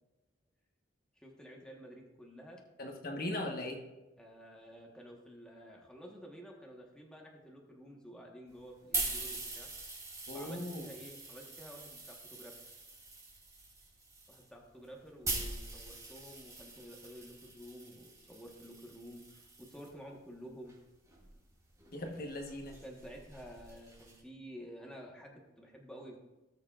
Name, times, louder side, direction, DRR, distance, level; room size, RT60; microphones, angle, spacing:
voice 1, 1.2-2.6 4.2-9.7 10.3-12.6 14.3-20.8 22.8-26.2, equal, 5° left, -1 dB, 1.3 m, -51 dB
voice 2, 2.8-3.8 10.3-10.9 21.9-22.8, left 1 dB, 50° left, 2 dB, 1.2 m, -39 dB
sound 1, 8.5-19.9 20.7-24.2, right 2 dB, 15° right, 2.9 m, -43 dB
18.0 x 6.5 x 2.5 m, 1.0 s
head